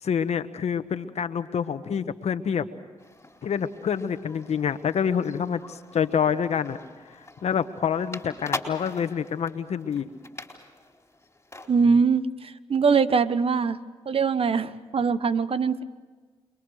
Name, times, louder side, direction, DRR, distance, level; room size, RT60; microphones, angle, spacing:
voice 1, 0.0-2.7 3.4-6.8 7.4-10.1, left 7 dB, 70° left, 10 dB, 1.3 m, -27 dB
sound 1, 3.0-11.8, left 2 dB, 20° left, 4.2 m, -42 dB
voice 2, 11.7-13.8 14.1-15.8, right 5 dB, 55° right, 13 dB, 1.2 m, -22 dB
29.0 x 22.5 x 6.5 m, 1.4 s
supercardioid pair, 50°, 11 cm